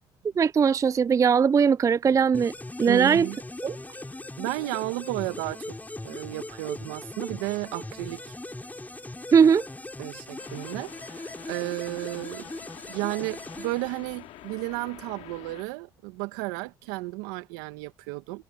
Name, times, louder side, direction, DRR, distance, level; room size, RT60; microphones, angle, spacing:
voice 1, 0.4-2.5 2.8-3.3 3.6-3.8 9.3-9.7, right 6 dB, 30° right, 0.3 m, -20 dB
sound 1, 2.3-14.4, left 2 dB, 15° left, 7.2 m, -40 dB
voice 2, 2.9-3.4 4.4-5.8 6.0-8.2 10.0-12.5 12.9-18.4, right 22 dB, 85° right, 2.0 m, -33 dB
sound 2, 10.4-15.6, left 16 dB, 75° left, 2.9 m, -47 dB
hypercardioid pair, 60°, 11 cm